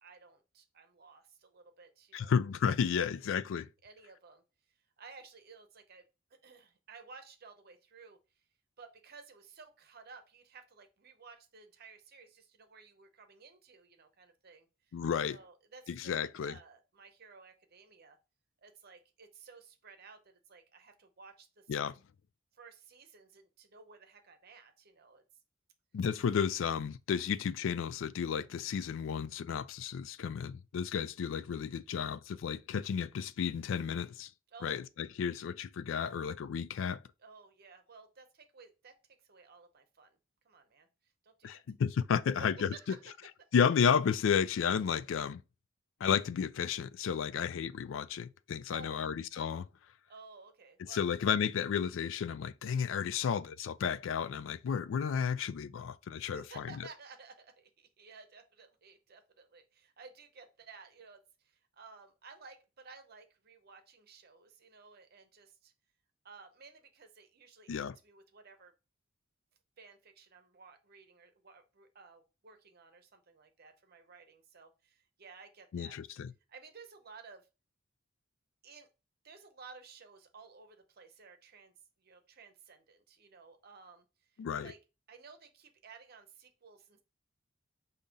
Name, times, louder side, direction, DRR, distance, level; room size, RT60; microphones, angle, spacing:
voice 1, 0.0-2.4 2.7-3.4 3.8-4.4 5.0-8.2 8.8-14.9 15.3-18.2 18.6-21.7 22.5-25.2 34.5-34.8 37.2-39.0 39.2-40.2 40.4-40.9 41.2-41.6 42.3-43.0 43.4-43.5 48.7-49.1 50.1-51.1 56.2-65.7 66.2-68.7 69.8-76.0 76.5-77.5 78.6-78.9 79.2-81.7 82.0-84.0 84.3-84.8 85.1-87.0, right 4 dB, 50° right, 0.8 m, -55 dB
voice 2, 2.1-3.7 14.9-15.4 15.9-16.5 21.7-21.9 25.9-34.3 34.6-34.8 35.2-37.0 41.4-42.7 43.5-45.4 46.0-49.7 50.9-56.6 67.7-67.9 75.7-76.3 84.4-84.7, left 7 dB, 70° left, 0.3 m, -32 dB
5.4 x 2.8 x 3.5 m
head